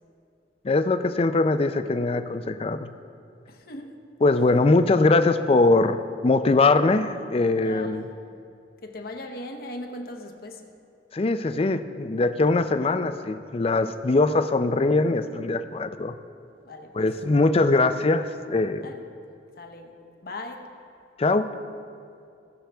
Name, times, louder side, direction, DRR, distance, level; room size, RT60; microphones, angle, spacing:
voice 1, 0.6-2.9 4.2-8.0 11.1-16.2 17.0-18.9 21.2-21.5, left 3 dB, 35° left, 0.4 m, -22 dB
voice 2, 3.5-4.0 7.6-8.1 8.8-10.7 16.6-17.1 18.8-19.0 19.6-20.7, left 1 dB, 60° left, 0.9 m, -39 dB
19.0 x 6.3 x 3.4 m
head